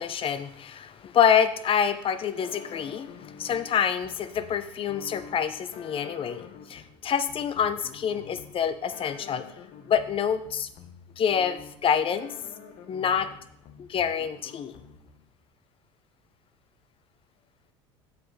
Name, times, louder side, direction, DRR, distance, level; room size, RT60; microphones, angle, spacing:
voice 1, 0.0-9.5 9.9-10.7 11.2-12.4 12.9-13.3 13.8-14.8, left 8 dB, 40° left, 12 dB, 0.7 m, -27 dB
sound 1, 2.4-15.3, left 6 dB, 55° left, 1.0 m, -48 dB
7.8 x 7.7 x 3.3 m, 0.71 s
hypercardioid pair, 75°, 15 cm